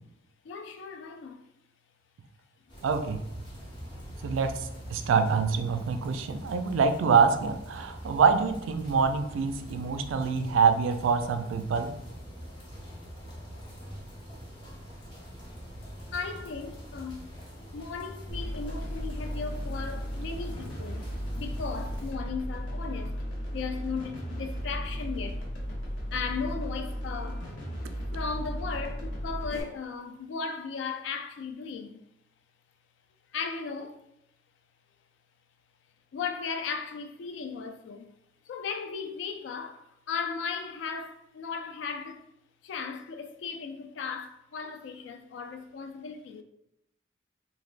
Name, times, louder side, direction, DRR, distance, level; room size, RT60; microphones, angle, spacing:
voice 1, 0.4-1.5 16.1-17.3 17.6-21.1 21.4-23.2 23.5-25.4 26.1-27.5 28.1-32.0 33.3-34.0 36.1-38.1 38.5-42.2 42.6-46.4, left 5 dB, 70° left, 0.3 m, -36 dB
sound 1, 2.7-22.1, equal, 25° left, 0.6 m, -44 dB
voice 2, 2.8-3.2 4.2-11.9, right 5 dB, 85° right, 0.3 m, -25 dB
sound 2, 18.3-29.6, equal, 90° left, 0.7 m, -35 dB
3.2 x 2.2 x 2.4 m
head